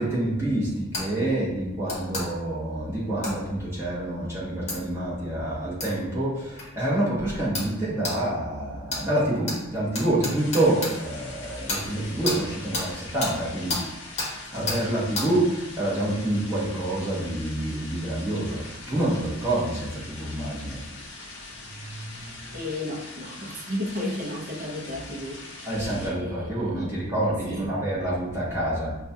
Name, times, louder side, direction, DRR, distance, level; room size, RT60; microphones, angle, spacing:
voice 1, 0.0-13.9 14.5-20.8 21.7-22.5 25.7-29.0, right 1 dB, 10° right, -9 dB, 1.2 m, -27 dB
sound 1, 0.9-1.1 1.9-2.3 3.2-3.4 4.7-4.8 5.8-5.9 6.6-6.7 7.5-7.7 8.0-8.2 8.9-9.0 9.5-9.6 9.9-10.9 11.7-11.8 12.3-12.4 12.7-12.9 13.2-13.3 13.7-13.8 14.2-14.3 14.7-14.8 15.2-15.3, left 2 dB, 30° left, 1.0 m, -29 dB
sound 2, 10.4-26.1, left 2 dB, 55° left, 0.7 m, -42 dB
voice 2, 22.5-25.6 26.0-27.0 27.5-27.7, left 1 dB, 40° right, -2 dB, 0.6 m, -33 dB
5.1 x 2.3 x 2.7 m, 0.95 s
head